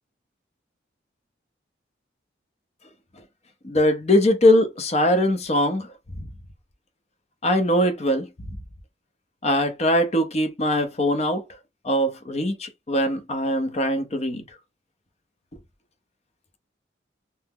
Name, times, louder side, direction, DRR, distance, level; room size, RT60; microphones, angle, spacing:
voice 1, 3.6-5.9 6.2-6.3 7.4-8.3 9.4-11.4 11.8-14.4, left 1 dB, 35° left, 0.6 m, -21 dB
2.8 x 2.0 x 3.6 m
head